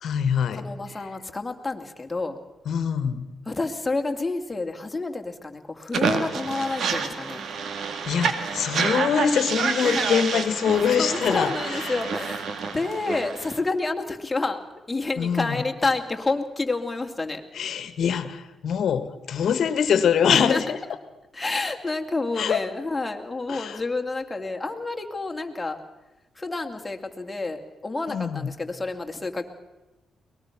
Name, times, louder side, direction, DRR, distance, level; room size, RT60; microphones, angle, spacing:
voice 1, 0.0-1.1 2.6-3.3 8.1-12.0 15.2-15.6 17.5-20.8 22.4-22.7 23.5-23.8 28.1-28.5, left 7 dB, 70° left, 13 dB, 1.5 m, -24 dB
voice 2, 0.6-2.4 3.5-7.4 9.8-10.2 11.0-12.5 12.7-14.6 14.9-17.4 20.3-20.6 21.3-25.8 26.4-29.4, left 3 dB, 20° left, 3 dB, 2.5 m, -29 dB
sound 1, 5.9-13.6, right 5 dB, 70° right, 2.2 m, -28 dB
22.5 x 19.5 x 6.0 m, 1.0 s
cardioid pair, 65°, 0 cm